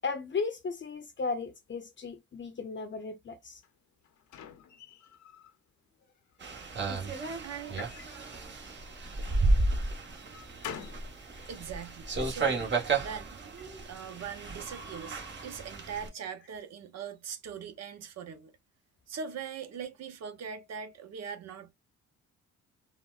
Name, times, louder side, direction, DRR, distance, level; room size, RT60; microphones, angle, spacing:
voice 1, 0.0-3.6 10.8-10.9, left 4 dB, 40° left, 0.7 m, -35 dB
sound 1, 3.6-5.6 6.0-6.7 7.7-9.2 9.8-11.1, left 8 dB, 75° left, 0.8 m, -48 dB
sound 2, 6.4-16.1, right 3 dB, 35° right, 1.2 m, -33 dB
voice 2, 7.4-7.8 10.2-10.6 11.5-18.5 19.1-21.7, right 7 dB, 60° right, 0.8 m, -41 dB
3.9 x 2.2 x 2.4 m
cardioid pair, 90°, 30 cm